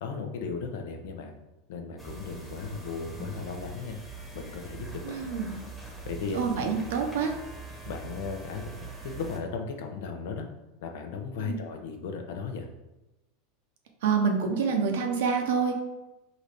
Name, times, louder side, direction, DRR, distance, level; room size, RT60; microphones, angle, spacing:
voice 1, 0.0-1.3 1.7-4.0 4.3-5.2 6.0-6.4 7.9-10.5 10.8-12.7, left 5 dB, 75° left, 4 dB, 0.7 m, -36 dB
sound 1, 2.0-9.4, right 3 dB, ahead, 1.1 m, -42 dB
voice 2, 5.0-5.6 6.3-7.3 11.4-11.6 14.0-15.8, right 5 dB, 75° right, 3 dB, 0.8 m, -27 dB
3.9 x 2.7 x 4.8 m, 1.0 s
hypercardioid pair, 110°, 0 cm